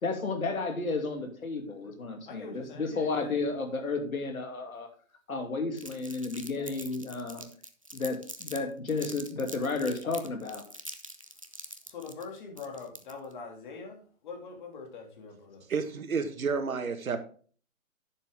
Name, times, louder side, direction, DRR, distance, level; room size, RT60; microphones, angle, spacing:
voice 1, 0.0-4.9 5.3-7.5 7.9-10.6, left 3 dB, 90° left, 4 dB, 2.7 m, -32 dB
voice 2, 2.3-3.5 11.9-15.7, left 4 dB, 35° left, 2 dB, 2.4 m, -43 dB
Crumpling crinkling, 5.8-8.6 8.9-13.3, equal, 25° right, 0.4 m, -44 dB
voice 3, 15.7-17.2, right 5 dB, 85° right, 9 dB, 1.6 m, -30 dB
10.5 x 7.1 x 3.6 m, 0.43 s
hypercardioid pair, 160°, 41 cm